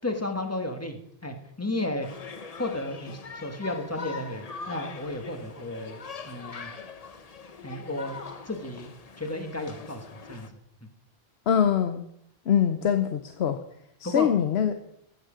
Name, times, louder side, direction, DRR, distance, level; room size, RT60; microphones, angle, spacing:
voice 1, 0.0-2.1 2.6-6.7 7.6-8.2 8.4-8.9 9.2-10.6 14.0-14.3, left 2 dB, 15° left, 5 dB, 1.3 m, -33 dB
sound 1, 2.0-10.5, left 5 dB, 40° left, 0.9 m, -42 dB
voice 2, 11.5-12.0 12.5-13.6 14.0-14.8, left 8 dB, 80° left, 8 dB, 1.0 m, -23 dB
14.5 x 9.1 x 5.0 m, 0.76 s
omnidirectional pair, 1.1 m